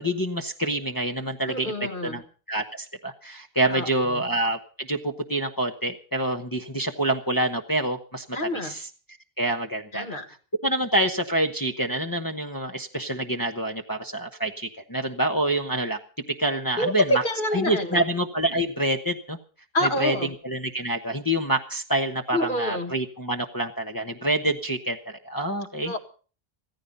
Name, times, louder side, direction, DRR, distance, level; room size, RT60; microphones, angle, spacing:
voice 1, 0.0-1.7 2.0-2.2 2.5-8.2 8.6-8.9 9.4-10.2 10.6-16.0 16.4-17.0 17.5-19.4 19.8-20.1 20.4-25.9, right 1 dB, 20° left, 1 dB, 1.0 m, -27 dB
voice 2, 1.5-2.2 3.7-4.2 8.3-8.7 9.9-10.2 16.8-18.0 19.7-20.3 22.3-22.9 25.8-26.0, left 1 dB, 55° left, 5 dB, 2.1 m, -27 dB
15.5 x 14.5 x 5.3 m, 0.39 s
omnidirectional pair, 1.0 m